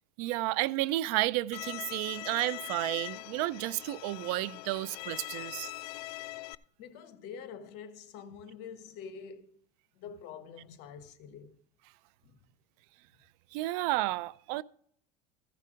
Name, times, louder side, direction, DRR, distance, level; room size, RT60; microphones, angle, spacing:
voice 1, 0.2-5.7 13.5-14.6, right 18 dB, 75° right, 0.4 m, -32 dB
Bowed string instrument, 1.5-6.5, left 19 dB, 80° left, 0.4 m, -42 dB
voice 2, 6.8-9.6 9.9-11.6 12.2-12.4, left 7 dB, 60° left, 1.2 m, -46 dB
15.0 x 5.8 x 5.0 m
supercardioid pair, 120°, 19 cm